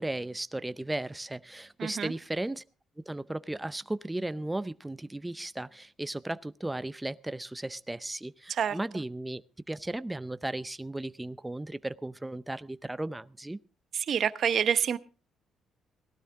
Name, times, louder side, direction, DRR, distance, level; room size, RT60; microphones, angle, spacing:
voice 1, 0.0-2.6 3.1-9.4 9.7-13.6, right 1 dB, 10° right, 15 dB, 0.6 m, -35 dB
voice 2, 1.8-2.1 8.5-8.8 13.9-15.0, right 8 dB, 60° right, 13 dB, 0.8 m, -27 dB
18.0 x 12.5 x 3.6 m, 0.35 s
cardioid pair, 90°, 0 cm